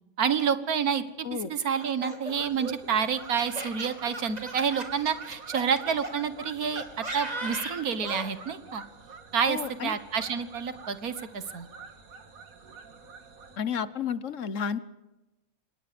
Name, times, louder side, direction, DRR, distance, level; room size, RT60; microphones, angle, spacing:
voice 1, 0.2-6.8 7.1-8.8 9.3-11.7, right 7 dB, 90° right, 12 dB, 1.9 m, -29 dB
Laughter, 1.7-6.1 6.8-8.3, right 2 dB, 25° right, 2.9 m, -37 dB
sound 1, 2.3-13.6, right 5 dB, 75° right, 2.3 m, -47 dB
voice 2, 9.5-9.9 13.6-14.8, left 7 dB, 60° left, 15 dB, 1.3 m, -31 dB
25.5 x 20.0 x 5.2 m, 1.1 s
omnidirectional pair, 1.5 m